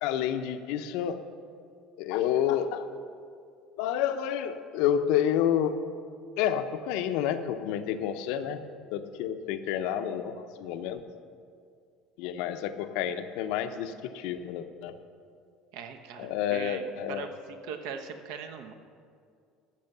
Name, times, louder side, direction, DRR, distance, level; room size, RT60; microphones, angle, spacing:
voice 1, 0.0-1.2 2.0-2.9 3.8-5.7 6.4-8.6 8.9-11.0 12.2-15.0 16.2-17.3, left 9 dB, 75° left, 9 dB, 0.7 m, -29 dB
voice 2, 15.7-18.7, right 7 dB, 75° right, 7 dB, 1.0 m, -40 dB
14.0 x 6.2 x 6.7 m, 2.3 s
cardioid pair, 150°, 0 cm